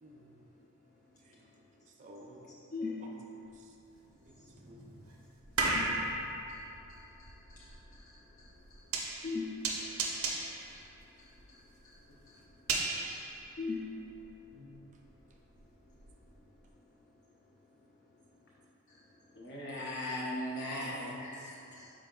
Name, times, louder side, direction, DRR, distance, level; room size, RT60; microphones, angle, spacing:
voice 1, 0.0-0.4 1.2-1.5 1.9-2.6 3.0-3.1 3.4-3.8 4.1-4.8, right 1 dB, 35° right, 0 dB, 0.4 m, -55 dB
voice 2, 0.9-1.9 2.7-3.1 4.1-4.7 5.1-5.2 5.6-12.7 13.3-14.3 15.1-15.2 15.8-16.0 16.3-16.5 17.4-18.2 18.9-19.2 20.6-20.8 21.2-21.9, left 3 dB, 40° left, -3 dB, 0.3 m, -46 dB
sound 1, 3.5-3.6 4.2-14.3 14.7-16.3 16.7-16.8, right 3 dB, 85° right, 0.6 m, -37 dB
voice 3, 19.3-21.2, left 1 dB, 55° left, -5 dB, 0.9 m, -38 dB
4.9 x 4.8 x 2.2 m, 2.6 s
head